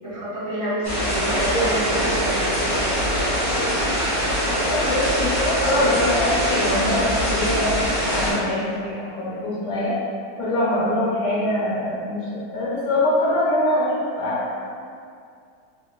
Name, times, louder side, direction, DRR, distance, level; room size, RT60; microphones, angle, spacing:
voice 1, 0.0-2.8, right 1 dB, 35° right, -15 dB, 1.8 m, -27 dB
sound 1, 0.8-8.3, equal, 15° right, 1.0 m, -23 dB
voice 2, 4.4-7.7 8.1-10.0 10.4-14.5, left 1 dB, 80° left, -7 dB, 1.4 m, -23 dB
3.8 x 2.8 x 2.2 m, 2.3 s
omnidirectional pair, 1.8 m